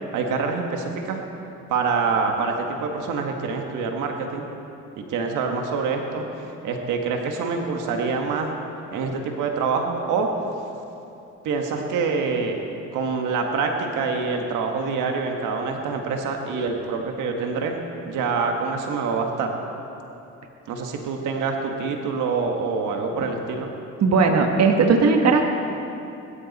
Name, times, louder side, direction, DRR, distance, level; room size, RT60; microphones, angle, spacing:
voice 1, 0.1-1.2 1.7-4.5 5.0-6.3 6.6-8.6 8.9-10.3 11.4-12.6 12.9-19.5 20.7-23.7, right 4 dB, 90° right, 2 dB, 1.6 m, -26 dB
voice 2, 24.0-25.5, right 4 dB, 60° right, 3 dB, 1.5 m, -17 dB
21.5 x 13.0 x 4.2 m, 2.8 s
cardioid pair, 90°, 30 cm